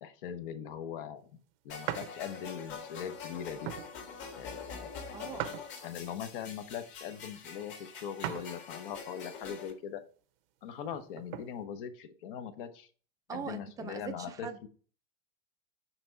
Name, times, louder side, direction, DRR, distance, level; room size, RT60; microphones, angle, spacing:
voice 1, 0.0-1.4 1.6-3.7 4.3-4.9 5.2-5.6 5.8-10.0 10.6-12.9 13.3-14.7, left 8 dB, 55° left, 0.9 m, -41 dB
sound 1, 1.7-9.7, left 6 dB, 35° left, 1.8 m, -45 dB
sound 2, 1.9-2.1 2.7-2.9 3.6-3.9 5.4-6.1 8.2-8.5 9.0-9.1 10.8-11.5, right 12 dB, 65° right, 0.7 m, -39 dB
voice 2, 5.1-5.6 6.0-6.1 13.3-14.7, right 7 dB, 10° right, 0.4 m, -42 dB
6.0 x 4.0 x 4.5 m
supercardioid pair, 150°, 31 cm